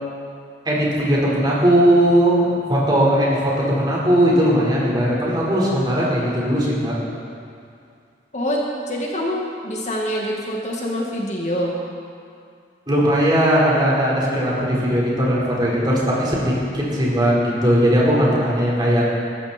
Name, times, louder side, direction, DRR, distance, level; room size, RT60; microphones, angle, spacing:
voice 1, 0.6-7.0 12.9-19.0, equal, 25° right, -6 dB, 4.7 m, -18 dB
voice 2, 8.3-11.7, equal, 40° left, -2 dB, 2.1 m, -25 dB
21.0 x 14.0 x 4.5 m, 2.3 s
head